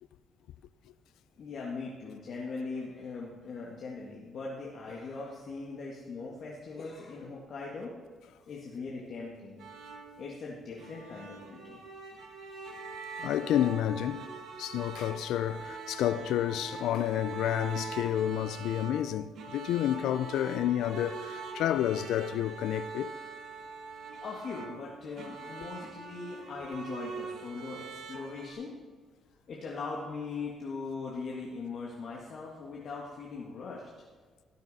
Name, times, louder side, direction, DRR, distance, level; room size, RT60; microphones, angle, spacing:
voice 1, 1.4-7.9 8.4-9.7 10.2-11.8 24.2-28.7 29.5-33.9, left 4 dB, 60° left, 1.7 m, -40 dB
sound 1, 9.6-28.5, right 4 dB, 75° right, 1.6 m, -43 dB
voice 2, 13.2-14.3 14.6-23.1, left 11 dB, 85° left, 0.4 m, -30 dB
17.0 x 6.6 x 4.1 m
cardioid pair, 90°, 0 cm